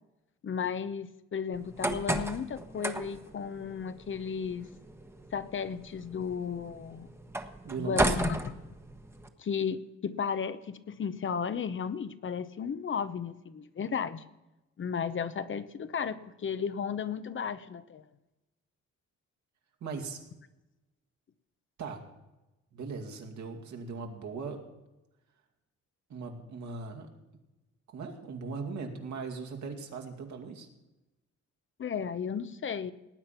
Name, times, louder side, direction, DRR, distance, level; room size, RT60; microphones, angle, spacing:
voice 1, 0.4-4.7 5.3-7.1 7.8-8.3 9.4-14.2 14.8-18.0 31.8-32.9, left 6 dB, 40° left, 13 dB, 0.8 m, -34 dB
sound 1, 1.5-9.3, right 1 dB, 10° right, 1.2 m, -35 dB
voice 2, 7.6-8.2 19.8-20.2 21.8-22.0 22.7-24.6 26.1-27.1 27.9-30.7, right 4 dB, 70° right, 3 dB, 2.5 m, -39 dB
19.0 x 8.7 x 5.9 m, 1.0 s
cardioid pair, 90°, 30 cm